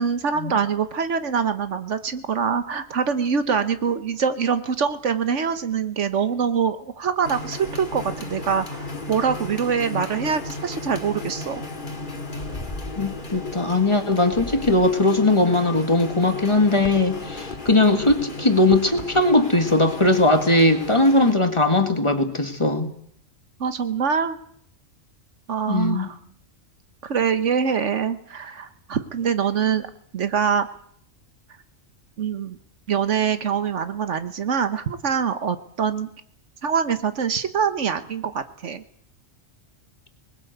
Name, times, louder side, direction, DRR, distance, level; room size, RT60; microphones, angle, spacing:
voice 1, 0.0-11.6 23.6-24.4 25.5-26.2 27.0-29.9 30.1-30.7 32.2-32.6 32.9-36.1 36.6-38.8, right 6 dB, 65° right, 11 dB, 1.4 m, -24 dB
sound 1, 7.2-21.3, left 2 dB, 40° left, 2.2 m, -35 dB
voice 2, 13.0-22.9 25.7-26.1, left 2 dB, 25° left, 7 dB, 1.8 m, -19 dB
20.5 x 18.0 x 7.9 m, 0.67 s
omnidirectional pair, 1.3 m